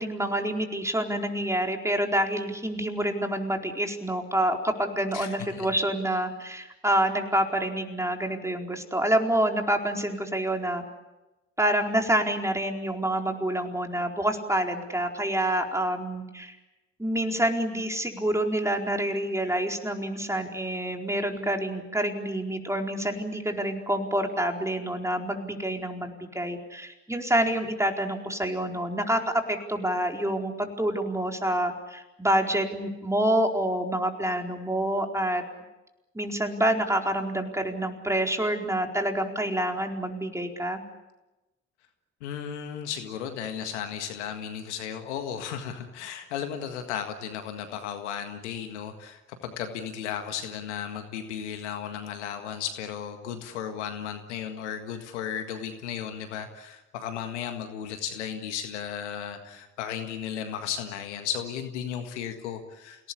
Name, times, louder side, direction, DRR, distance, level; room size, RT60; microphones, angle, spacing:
voice 1, 0.0-10.8 11.6-16.6 17.0-35.4 36.1-40.8, right 1 dB, 10° right, 3 dB, 4.4 m, -27 dB
voice 2, 5.1-5.7 42.2-63.1, left 8 dB, 80° left, 7 dB, 1.8 m, -35 dB
29.5 x 18.0 x 8.6 m, 1.0 s
hypercardioid pair, 45°, 34 cm